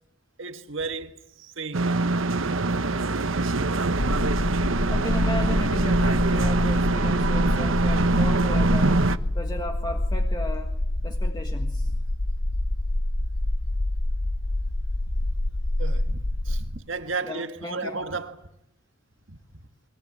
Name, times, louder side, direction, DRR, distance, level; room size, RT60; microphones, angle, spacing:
voice 1, 0.4-2.0 11.9-12.0 15.8-18.5 19.3-19.4, right 4 dB, 70° right, 1.8 m, -34 dB
sound 1, 1.7-9.2, right 2 dB, 90° right, 1.0 m, -23 dB
sound 2, 4.0-16.6, left 1 dB, 60° left, 1.2 m, -27 dB
voice 2, 4.9-9.1 9.3-10.7 11.0-11.9 17.2-18.0, left 1 dB, 20° left, 1.6 m, -35 dB
28.5 x 22.0 x 8.6 m
head